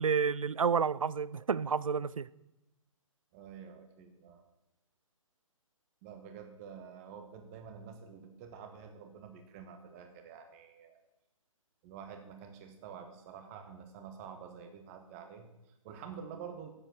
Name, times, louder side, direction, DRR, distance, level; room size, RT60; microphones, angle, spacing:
voice 1, 0.0-2.3, right 6 dB, 75° right, 0.4 m, -30 dB
voice 2, 3.3-4.4 6.0-11.0 11.8-16.7, right 7 dB, 25° right, 1.3 m, -48 dB
9.0 x 7.7 x 6.2 m
figure-of-eight pair, 130°, 18 cm